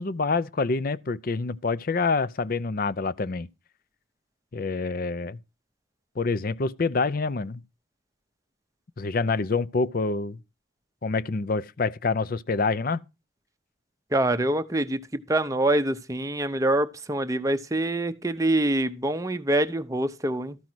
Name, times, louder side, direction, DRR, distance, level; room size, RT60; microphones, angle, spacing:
voice 1, 0.0-3.5 4.5-5.4 6.2-7.6 9.0-10.4 11.0-13.0, left 4 dB, 45° left, 0.5 m, -26 dB
voice 2, 14.1-20.6, right 1 dB, 15° right, 0.6 m, -25 dB
13.0 x 5.3 x 6.1 m
head